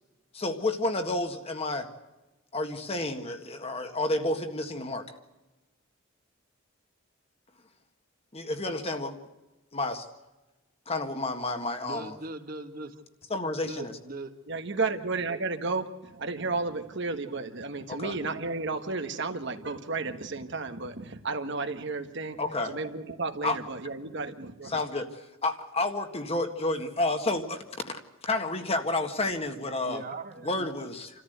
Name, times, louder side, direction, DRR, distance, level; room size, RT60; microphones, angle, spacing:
voice 1, 0.3-1.9 2.5-5.1 8.3-9.2 9.7-10.0 10.9-12.1 13.3-13.9 17.9-18.1 22.4-22.7 23.4-23.6 24.6-27.9 28.2-30.0 30.4-31.1, left 2 dB, 30° left, 6 dB, 1.7 m, -30 dB
voice 2, 11.8-13.0 13.7-14.3 29.8-30.7, right 2 dB, 45° right, 7 dB, 1.6 m, -39 dB
voice 3, 14.5-22.4 22.6-24.7, right 3 dB, 60° right, 7 dB, 1.5 m, -33 dB
28.0 x 14.0 x 8.0 m, 1.1 s
head